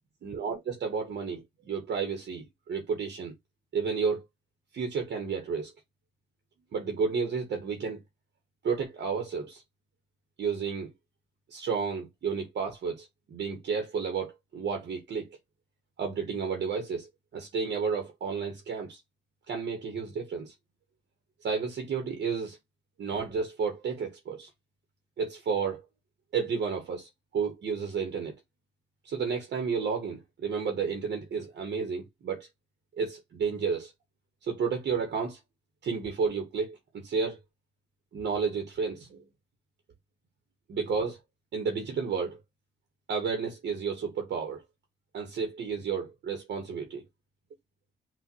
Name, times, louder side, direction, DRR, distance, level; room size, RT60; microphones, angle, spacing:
voice 1, 0.2-1.4 1.7-3.3 3.7-4.2 4.7-5.7 6.7-8.0 8.6-9.6 10.4-10.9 11.5-15.3 16.0-17.1 17.3-19.0 19.5-20.5 21.4-22.6 23.0-24.5 25.2-25.8 26.3-28.3 29.0-32.5 33.0-33.9 34.4-35.4 35.8-37.4 38.1-39.2 40.7-41.2 41.5-42.4 43.1-44.6 45.1-47.0, right 5 dB, 60° right, 1.1 m, -31 dB
5.8 x 2.4 x 2.8 m
cardioid pair, 90°, 20 cm